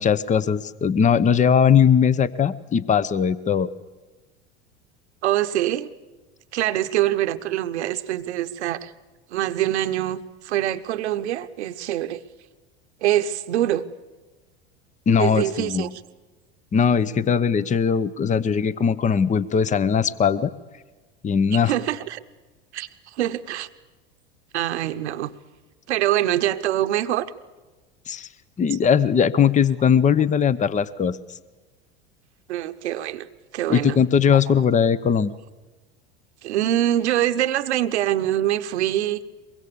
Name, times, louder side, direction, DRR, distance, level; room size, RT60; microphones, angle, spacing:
voice 1, 0.0-3.7 15.1-15.9 16.7-20.5 21.2-21.7 28.1-28.3 28.6-31.2 33.7-35.3, left 7 dB, 20° left, 18 dB, 0.8 m, -19 dB
voice 2, 5.2-5.9 6.5-8.9 9.3-12.2 13.0-13.8 15.2-15.9 21.5-22.2 22.7-23.7 24.5-25.3 25.9-27.3 32.5-33.3 33.5-34.0 36.4-39.2, right 13 dB, 80° right, 10 dB, 1.1 m, -24 dB
23.5 x 22.5 x 6.9 m, 1.3 s
hypercardioid pair, 85°, 34 cm